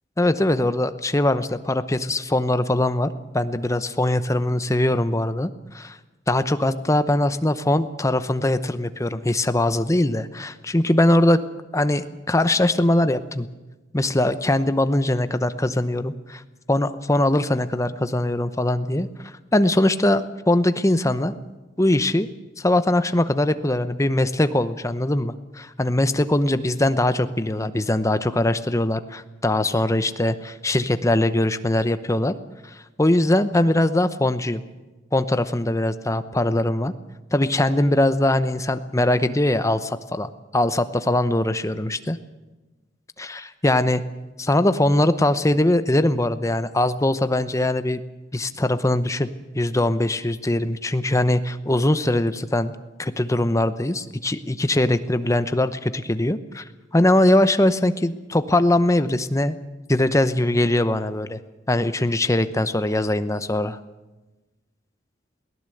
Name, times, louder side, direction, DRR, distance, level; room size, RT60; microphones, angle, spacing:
voice 1, 0.2-6.0 6.3-11.4 11.7-13.5 13.9-16.4 16.7-19.1 19.5-21.3 21.8-22.3 22.6-32.3 33.0-34.6 35.1-36.9 37.3-42.2 43.2-44.0 44.4-48.0 48.3-49.3 49.5-52.7 53.0-56.6 56.9-59.5 59.9-61.4 61.7-63.8, left 1 dB, 15° left, 11 dB, 0.8 m, -21 dB
22.0 x 17.0 x 7.9 m, 1.1 s
head